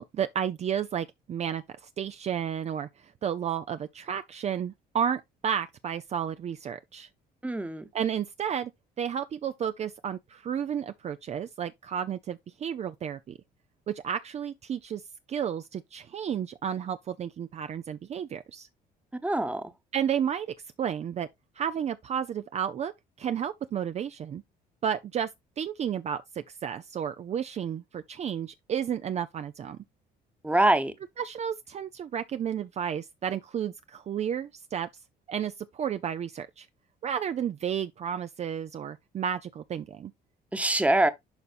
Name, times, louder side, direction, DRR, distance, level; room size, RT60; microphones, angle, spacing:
voice 1, 0.0-7.1 7.9-8.7 9.0-13.4 13.9-15.0 15.3-18.7 19.9-21.3 21.6-22.9 23.2-24.4 24.8-25.3 25.6-29.8 31.2-34.9 35.3-36.7 37.0-40.1, right 8 dB, 40° right, 0.5 m, -32 dB
voice 2, 7.4-7.9 19.2-19.6 30.4-30.9 40.5-41.1, right 1 dB, 10° right, 1.1 m, -24 dB
11.5 x 4.1 x 2.5 m
cardioid pair, 110°, 17 cm